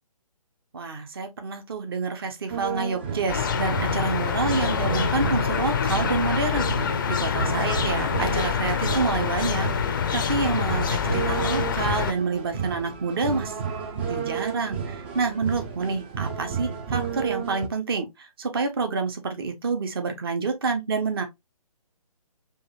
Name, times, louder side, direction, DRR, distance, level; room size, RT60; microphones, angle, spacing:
voice 1, 0.7-13.5 14.1-18.1 18.4-21.2, right 4 dB, 40° right, 1.0 m, -28 dB
sound 1, 2.5-17.7, right 6 dB, 20° right, 0.5 m, -32 dB
sound 2, 3.3-12.1, left 7 dB, 35° left, 0.5 m, -26 dB
5.1 x 2.6 x 2.9 m
figure-of-eight pair, 140°, 19 cm